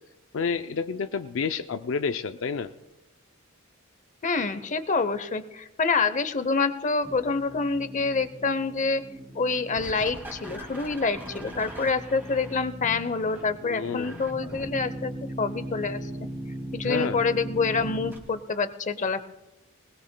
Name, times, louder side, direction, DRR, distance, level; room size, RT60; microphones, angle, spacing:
voice 1, 0.3-2.7 13.6-14.1 16.8-17.2, left 5 dB, 65° left, 9 dB, 0.4 m, -29 dB
voice 2, 4.2-9.0 9.3-16.1 16.7-19.2, left 4 dB, 35° left, 13 dB, 0.7 m, -27 dB
sound 1, 7.0-18.2, right 1 dB, 10° right, 2.3 m, -39 dB
20.5 x 19.5 x 2.2 m, 1.0 s
head